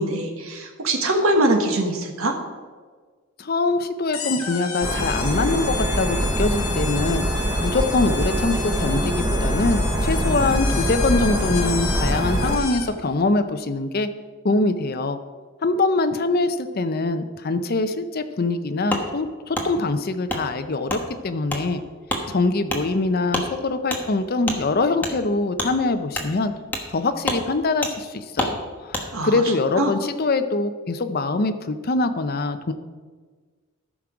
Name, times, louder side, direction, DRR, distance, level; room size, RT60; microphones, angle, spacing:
voice 1, 0.0-2.3 29.1-29.4 29.8-29.9, right 1 dB, 75° right, 3 dB, 1.4 m, -22 dB
voice 2, 3.4-14.1 14.4-15.2 15.6-21.8 22.3-26.5 26.9-32.7, left 3 dB, 45° left, 9 dB, 0.6 m, -23 dB
sound 1, 4.1-13.0, left 5 dB, 85° left, 1.5 m, -32 dB
sound 2, 4.8-12.6, equal, 15° right, 0.7 m, -24 dB
Wood, 18.9-19.1 19.5-19.7 20.3-20.4 20.9-21.0 21.5-21.6 22.1-22.2 22.7-22.8 23.3-23.5 23.9-24.0 24.4-24.6 25.0-25.1 25.6-25.7 26.1-26.3 26.7-26.9 27.2-27.4 27.8-27.9 28.4-28.5 28.9-29.1, left 1 dB, 10° left, 1.2 m, -26 dB
14.0 x 6.0 x 5.0 m, 1.5 s
head